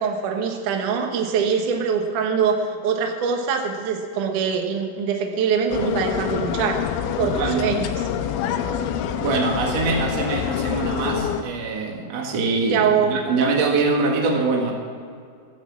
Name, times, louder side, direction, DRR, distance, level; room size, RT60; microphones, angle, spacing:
voice 1, 0.0-6.8 7.2-8.0 12.7-13.2, right 6 dB, 75° right, 3 dB, 1.9 m, -23 dB
sound 1, 5.7-11.4, left 9 dB, 85° left, 3.1 m, -26 dB
voice 2, 7.2-7.7 9.2-12.8 13.1-14.7, right 3 dB, 55° right, 0 dB, 1.9 m, -23 dB
14.0 x 10.0 x 7.4 m, 2.3 s
omnidirectional pair, 5.6 m